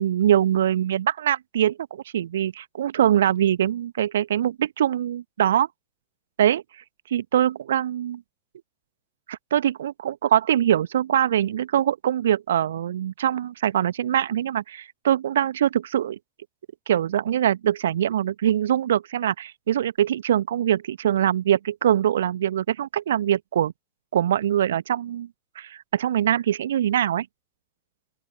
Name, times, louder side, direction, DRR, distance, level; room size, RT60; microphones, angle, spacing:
voice 1, 0.0-5.7 6.4-6.6 7.1-8.2 9.3-16.2 16.9-23.7 24.1-25.3 25.5-27.3, right 10 dB, 60° right, 1.4 m, -23 dB
open air
figure-of-eight pair, 90°, 0 cm